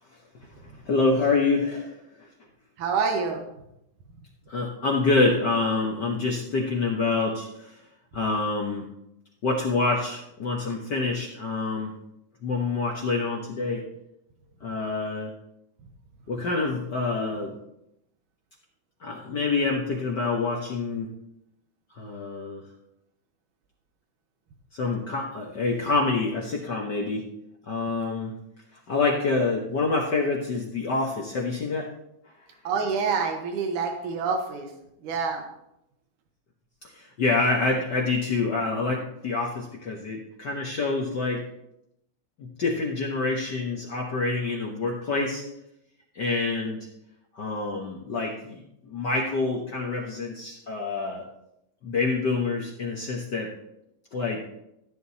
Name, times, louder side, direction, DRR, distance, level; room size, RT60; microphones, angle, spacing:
voice 1, 0.8-2.3 4.5-7.8 8.1-8.9 9.4-11.9 12.4-13.8 14.6-15.3 16.3-17.5 19.0-21.1 21.9-22.6 24.7-27.2 27.7-28.3 28.9-31.9 36.9-41.5 42.4-45.4 46.1-46.8 47.3-51.2 51.8-53.5 54.1-54.4, left 3 dB, 60° left, -2 dB, 1.1 m, -27 dB
voice 2, 2.8-3.4 32.6-34.7 35.0-35.4, right 5 dB, 85° right, 3 dB, 2.7 m, -27 dB
14.0 x 10.0 x 2.8 m, 0.83 s
omnidirectional pair, 3.5 m